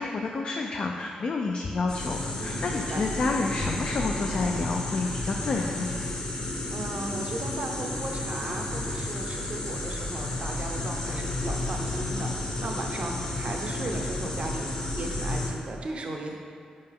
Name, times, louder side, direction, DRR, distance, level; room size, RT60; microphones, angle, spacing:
voice 1, 0.0-5.9, left 3 dB, 50° left, 1 dB, 0.4 m, -29 dB
sound 1, 1.9-15.5, left 2 dB, 35° left, 0.8 m, -32 dB
voice 2, 2.3-3.0 6.3-16.4, right 2 dB, 45° right, 1 dB, 0.7 m, -36 dB
5.7 x 5.4 x 3.5 m, 2.2 s
wide cardioid pair, 130°, 3 cm